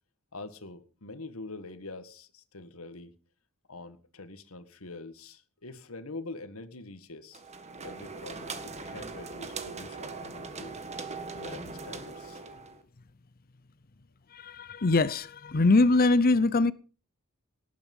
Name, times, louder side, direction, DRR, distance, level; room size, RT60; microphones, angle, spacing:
voice 1, 0.3-3.1 3.7-7.4 7.8-10.7 11.3-12.4, left 3 dB, 80° left, 1.8 m, -44 dB
sound 1, 7.3-12.8, right 4 dB, 30° right, 1.7 m, -40 dB
voice 2, 14.3-16.7, left 3 dB, 45° left, 0.7 m, -23 dB
18.5 x 10.5 x 5.5 m
head